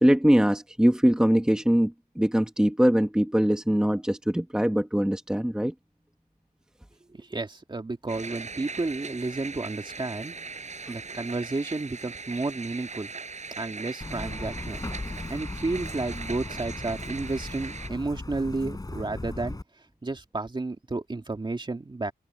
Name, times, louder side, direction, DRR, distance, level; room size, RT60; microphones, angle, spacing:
voice 1, 0.0-5.7, equal, 5° right, 1.2 m, -22 dB
voice 2, 7.1-10.4 10.9-13.1 13.6-14.8 15.3-19.6 20.0-22.1, right 3 dB, 30° right, 2.5 m, -32 dB
sound 1, 8.1-17.9, right 4 dB, 45° right, 6.2 m, -40 dB
Truck, 14.0-19.6, left 2 dB, 20° left, 6.3 m, -37 dB
wide cardioid pair, 90°, 17 cm